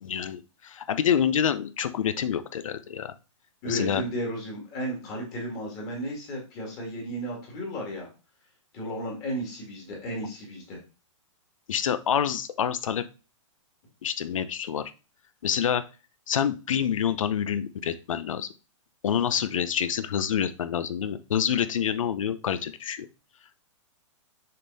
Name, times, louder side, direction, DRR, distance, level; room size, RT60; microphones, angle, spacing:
voice 1, 0.0-3.1 3.6-4.0 11.7-13.0 14.0-14.8 15.4-15.8 16.3-18.5 19.0-23.1, left 8 dB, 80° left, 12 dB, 0.8 m, -27 dB
voice 2, 3.6-8.1 8.7-10.8, equal, 20° left, -2 dB, 2.1 m, -34 dB
6.5 x 3.8 x 4.1 m, 0.32 s
hypercardioid pair, 175°, 17 cm